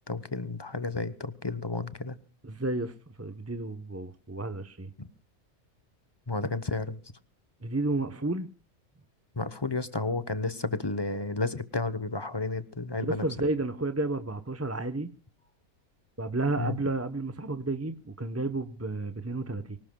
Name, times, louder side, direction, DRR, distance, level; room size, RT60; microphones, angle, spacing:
voice 1, 0.1-2.2 5.0-5.1 6.3-7.0 9.4-13.2 16.6-16.8, left 3 dB, 20° left, 0.8 m, -32 dB
voice 2, 2.4-4.9 7.6-8.5 13.0-15.1 16.2-19.8, right 2 dB, 15° right, 0.7 m, -31 dB
24.5 x 18.5 x 2.3 m
omnidirectional pair, 1.4 m